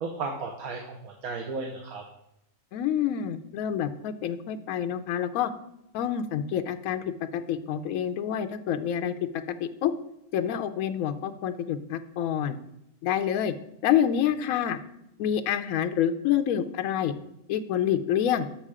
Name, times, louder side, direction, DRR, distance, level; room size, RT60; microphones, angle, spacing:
voice 1, 0.0-2.0, right 3 dB, 80° right, 2 dB, 1.4 m, -34 dB
voice 2, 2.7-5.5 5.9-7.0 7.3-9.1 9.5-9.9 10.3-12.6 13.0-13.5 13.8-14.8 15.2-17.1 17.5-18.5, left 9 dB, 75° left, 9 dB, 1.0 m, -27 dB
7.3 x 6.5 x 4.9 m, 0.83 s
omnidirectional pair, 1.5 m